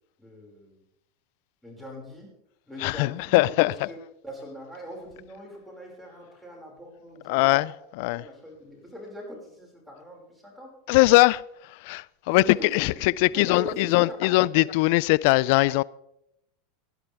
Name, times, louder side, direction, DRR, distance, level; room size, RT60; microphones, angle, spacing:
voice 1, 0.2-0.8 1.6-2.3 2.7-7.7 8.1-10.7 12.3-13.0 13.3-14.6, equal, ahead, 5.5 m, -42 dB
voice 2, 2.8-3.7 7.3-7.7 8.0-8.2 10.9-11.4 11.8-12.4 12.7-15.8, left 21 dB, 65° left, 0.3 m, -21 dB
18.0 x 11.0 x 3.5 m
supercardioid pair, 115°, 0 cm